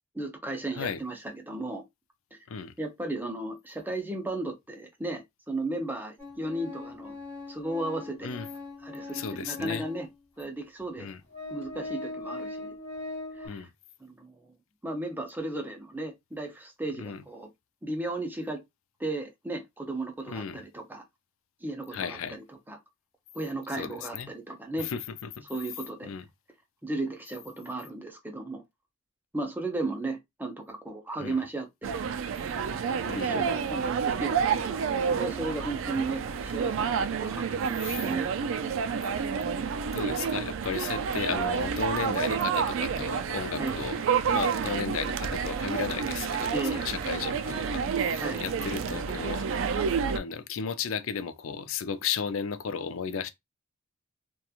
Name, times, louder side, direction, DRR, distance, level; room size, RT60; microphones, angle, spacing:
voice 1, 0.1-1.8 2.8-7.1 7.5-8.4 8.8-10.1 10.4-11.1 11.5-12.7 13.3-13.6 14.0-14.5 14.8-17.5 17.8-18.6 19.0-21.0 21.6-22.8 23.3-24.9 25.5-26.1 26.8-28.6 29.3-32.0 33.1-38.3 43.6-43.8 46.5-46.8 48.2-48.4, right 2 dB, 10° right, 0.5 m, -35 dB
Organ, 6.2-10.1 10.8-10.9 11.3-13.5, left 2 dB, 15° left, 1.2 m, -40 dB
voice 2, 9.1-9.8 11.0-11.2 13.4-13.7 17.0-17.2 20.3-20.6 21.9-22.4 23.7-24.3 24.8-25.4 26.0-26.2 31.2-31.4 33.0-33.4 37.8-38.0 39.8-44.0 44.3-47.8 48.4-49.5 50.1-53.3, left 6 dB, 80° left, 0.4 m, -34 dB
sound 1, 31.8-50.2, right 6 dB, 70° right, 0.3 m, -29 dB
2.9 x 2.2 x 2.3 m
head